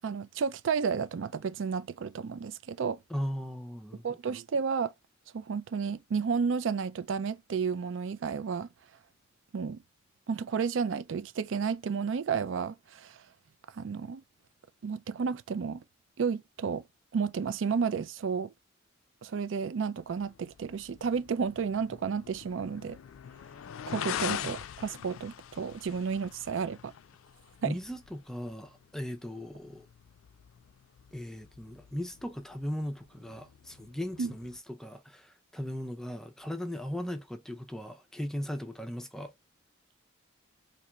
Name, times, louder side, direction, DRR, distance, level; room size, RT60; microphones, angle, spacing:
voice 1, 0.0-3.0 4.0-4.9 5.3-8.7 9.5-9.8 10.3-13.2 13.7-14.2 14.8-15.8 16.2-16.8 17.1-18.5 19.2-23.0 23.9-26.9 27.6-27.7 34.2-34.3, right 6 dB, 65° right, 0.4 m, -32 dB
voice 2, 3.1-4.2 24.4-24.6 27.6-29.9 31.1-39.3, equal, 5° left, 0.4 m, -38 dB
sound 1, 20.0-34.6, left 9 dB, 90° left, 0.4 m, -44 dB
4.2 x 2.9 x 2.2 m
head